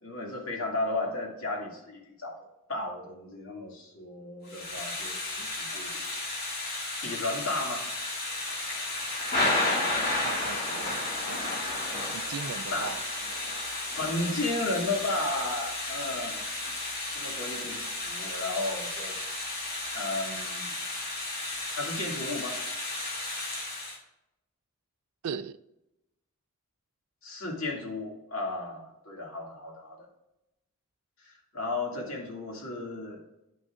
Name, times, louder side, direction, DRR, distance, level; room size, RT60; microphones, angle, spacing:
voice 1, 0.0-2.4 2.7-6.0 7.0-7.9 12.7-12.9 13.9-16.4 17.1-19.2 19.9-20.7 21.8-22.6 27.2-30.0 31.5-33.2, left 2 dB, 75° left, 2.2 m, -34 dB
Thunder / Rain, 4.5-24.0, left 2 dB, 45° left, 1.8 m, -33 dB
voice 2, 10.2-11.5 12.1-13.0 25.2-25.6, right 7 dB, 85° right, 0.4 m, -38 dB
10.5 x 6.3 x 2.4 m
head